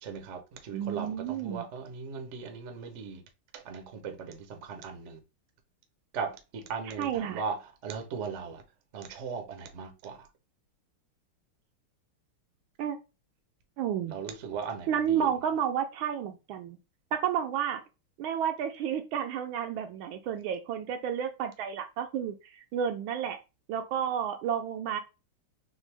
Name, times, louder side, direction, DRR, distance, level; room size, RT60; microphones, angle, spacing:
voice 1, 0.0-3.2 3.5-5.2 6.1-8.6 8.9-10.3 14.1-15.3, right 5 dB, 55° right, 0.8 m, -38 dB
voice 2, 0.7-1.7 7.0-7.4 12.8-13.0 13.8-14.2 14.9-16.8 17.1-17.8 18.2-23.4 23.7-25.0, right 8 dB, 75° right, 1.3 m, -31 dB
6.2 x 2.2 x 3.3 m
omnidirectional pair, 2.4 m